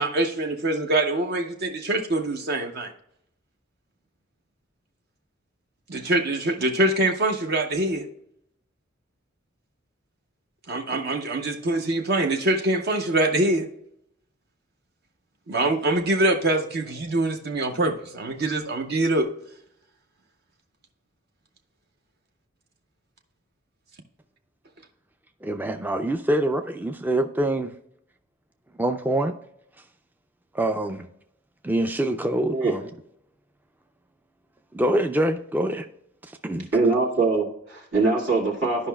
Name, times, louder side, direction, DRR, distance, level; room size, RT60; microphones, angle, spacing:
voice 1, 0.0-2.9 5.9-8.1 10.7-13.7 15.5-19.3, right 2 dB, 55° right, 0.7 m, -24 dB
voice 2, 25.4-27.7 28.8-29.3 30.5-31.1 31.6-32.9 34.7-35.9 36.4-36.7, right 1 dB, 10° right, 0.3 m, -25 dB
voice 3, 36.7-38.9, right 3 dB, 80° right, 1.8 m, -22 dB
12.0 x 5.4 x 2.2 m
head